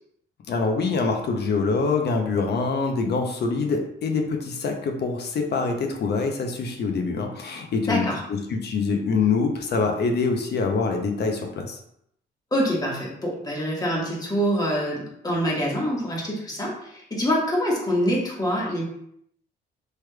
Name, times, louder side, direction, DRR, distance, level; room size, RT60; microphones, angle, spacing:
voice 1, 0.5-11.8, left 4 dB, 55° left, 3 dB, 0.6 m, -25 dB
voice 2, 7.9-8.2 12.5-18.8, equal, 20° left, -4 dB, 1.2 m, -25 dB
3.2 x 3.1 x 2.2 m, 0.72 s
cardioid pair, 90°, 20 cm